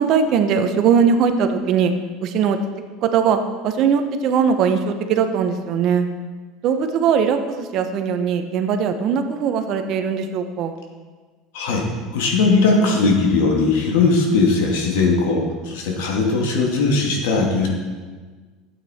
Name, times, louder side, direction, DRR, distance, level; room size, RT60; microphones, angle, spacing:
voice 1, 0.0-1.9 2.2-2.6 3.0-6.1 6.6-10.8, right 6 dB, 50° right, 7 dB, 1.0 m, -20 dB
voice 2, 11.5-11.9 12.1-17.7, left 3 dB, 85° left, 0 dB, 2.4 m, -19 dB
12.5 x 8.4 x 4.4 m, 1.4 s
supercardioid pair, 135°, 0 cm